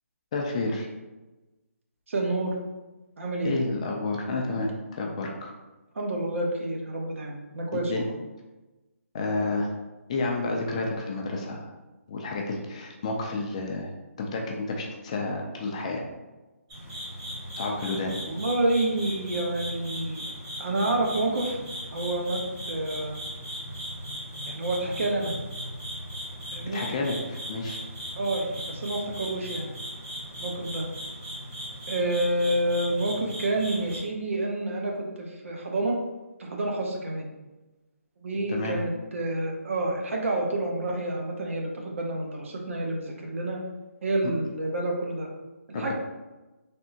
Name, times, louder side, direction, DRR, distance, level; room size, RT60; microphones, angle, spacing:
voice 1, 0.3-0.9 3.4-5.5 7.7-8.0 9.1-9.7 10.1-11.7 12.1-13.9 14.2-16.0 17.6-18.2 26.7-27.8 38.5-38.8 45.7-45.9, left 3 dB, 25° left, 0 dB, 0.3 m, -30 dB
voice 2, 2.1-2.6 3.2-3.6 5.9-8.1 18.3-20.3 20.6-21.6 21.9-22.4 22.7-23.2 24.4-25.3 26.5-26.8 28.1-29.7 30.4-30.8 31.9-36.0 36.4-37.3 38.2-43.6 44.0-45.3 45.7-45.9, right 1 dB, 60° right, 0 dB, 0.7 m, -28 dB
sound 1, 16.7-34.0, equal, 25° right, 1.0 m, -38 dB
3.4 x 2.0 x 2.7 m, 1.1 s
hypercardioid pair, 160°, 8 cm